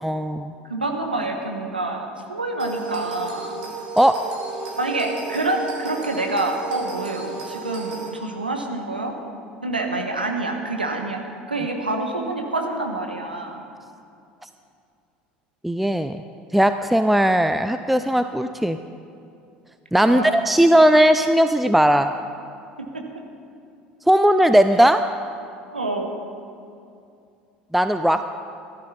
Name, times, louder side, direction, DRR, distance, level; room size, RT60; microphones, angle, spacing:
voice 1, 0.0-0.5 4.0-4.2 15.6-16.2 16.5-18.8 19.9-22.1 24.1-25.0 27.7-28.2, equal, ahead, 10 dB, 0.4 m, -17 dB
voice 2, 0.7-3.6 4.8-9.1 9.6-11.2 11.5-13.6 20.1-20.3 22.8-23.0 25.7-26.1, right 2 dB, 90° right, 3 dB, 1.3 m, -27 dB
sound 1, 2.6-8.1, right 4 dB, 65° right, 2.5 m, -33 dB
16.5 x 13.5 x 4.3 m, 2.5 s
figure-of-eight pair, 70°, 5 cm